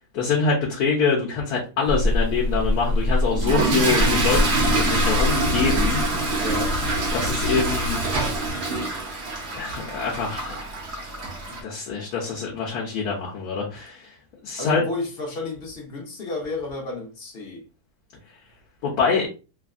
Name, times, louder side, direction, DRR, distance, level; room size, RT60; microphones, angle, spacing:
voice 1, 0.1-6.0 7.1-8.0 9.5-10.5 11.5-14.1 14.4-14.8 18.8-19.3, left 5 dB, 75° left, -3 dB, 1.3 m, -25 dB
sound 1, 1.8-8.5, left 1 dB, 85° right, 1.1 m, -26 dB
Toilet flush / Fill (with liquid), 3.3-11.6, right 2 dB, 55° right, 0.9 m, -25 dB
voice 2, 6.3-6.8 14.6-17.6, left 3 dB, 50° left, 0 dB, 0.8 m, -32 dB
3.1 x 2.5 x 2.4 m, 0.32 s
omnidirectional pair, 1.6 m